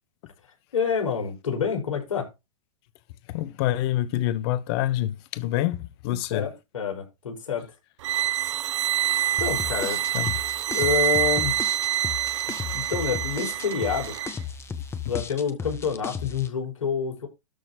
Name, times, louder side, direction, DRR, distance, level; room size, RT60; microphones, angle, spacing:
voice 1, 0.7-2.3 6.1-7.7 9.4-10.0 10.7-11.5 12.7-14.1 15.1-17.3, left 6 dB, 85° left, 5.3 m, -28 dB
voice 2, 3.3-6.5 10.1-10.4, left 13 dB, 50° left, 1.2 m, -26 dB
sound 1, 8.0-14.4, right 13 dB, 65° right, 0.7 m, -26 dB
sound 2, 9.4-16.5, left 6 dB, 15° left, 1.3 m, -35 dB
13.0 x 4.3 x 4.9 m
hypercardioid pair, 120°, 17 cm